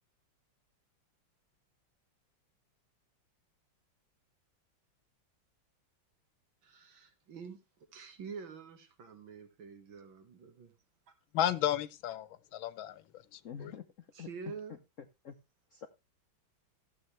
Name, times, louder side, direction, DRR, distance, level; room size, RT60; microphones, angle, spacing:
voice 1, 6.6-7.6 7.9-10.7 14.1-14.8, right 5 dB, 85° right, 2.4 m, -47 dB
voice 2, 11.3-13.0 13.3-13.7, left 12 dB, 90° left, 1.6 m, -33 dB
voice 3, 13.4-14.5 15.0-15.4 15.7-15.9, left 8 dB, 55° left, 0.9 m, -47 dB
14.5 x 7.7 x 3.2 m
omnidirectional pair, 2.1 m